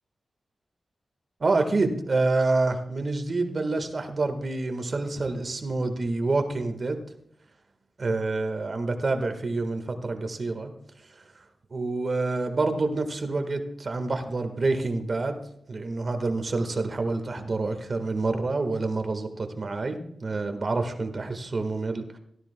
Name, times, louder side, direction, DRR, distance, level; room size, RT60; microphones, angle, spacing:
voice 1, 1.4-7.0 8.0-10.7 11.7-15.4 15.7-22.0, right 3 dB, 50° right, 7 dB, 1.6 m, -27 dB
16.0 x 13.0 x 2.3 m, 0.70 s
cardioid pair, 70°, 0 cm